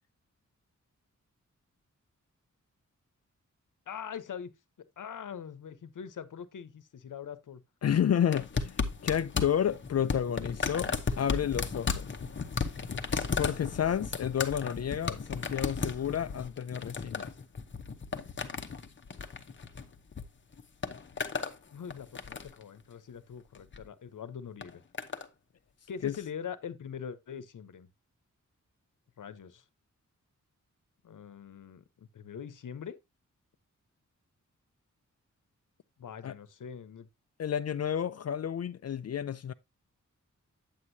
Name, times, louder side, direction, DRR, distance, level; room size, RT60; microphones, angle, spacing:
voice 1, 3.9-4.5 5.0-7.6 8.3-8.4 21.7-24.8 25.9-27.9 29.2-29.6 31.0-33.0 36.0-37.1, left 7 dB, 85° left, 0.9 m, -43 dB
voice 2, 7.8-8.8 9.0-10.9 11.2-12.1 13.4-17.3 26.0-26.1 36.2-36.3 37.4-39.5, left 9 dB, 55° left, 0.4 m, -30 dB
sound 1, 8.3-20.2 20.5-21.6 21.9-22.6 23.5-23.8 24.6-25.3 26.1-26.2, left 5 dB, 40° left, 0.8 m, -35 dB
8.6 x 8.1 x 2.7 m
wide cardioid pair, 165°, 30 cm